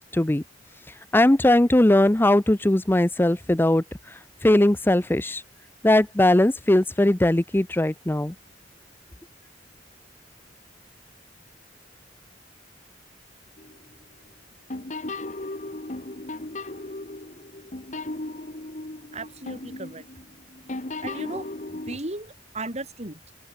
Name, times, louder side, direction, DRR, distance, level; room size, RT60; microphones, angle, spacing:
voice 1, 0.1-0.4 1.1-3.8 4.4-5.4 5.8-8.3, left 1 dB, 10° left, 0.6 m, -19 dB
sound 1, 13.6-13.9 14.7-22.0, left 2 dB, 40° left, 1.7 m, -36 dB
voice 2, 19.1-20.1 21.0-23.3, right 2 dB, 40° right, 4.8 m, -36 dB
open air
head